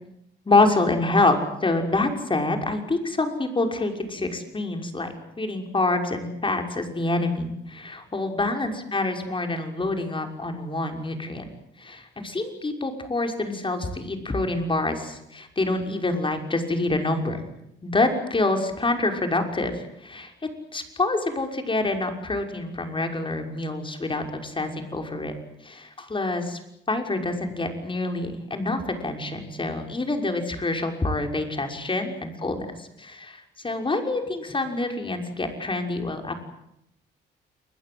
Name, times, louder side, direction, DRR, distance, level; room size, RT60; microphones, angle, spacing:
voice 1, 0.5-1.4 1.6-5.1 5.4-11.5 11.8-17.4 17.8-20.3 20.7-25.3 25.6-26.6 26.9-36.3, left 2 dB, 25° left, 4 dB, 6.0 m, -26 dB
29.5 x 22.0 x 8.0 m, 0.78 s
cardioid pair, 90°, 20 cm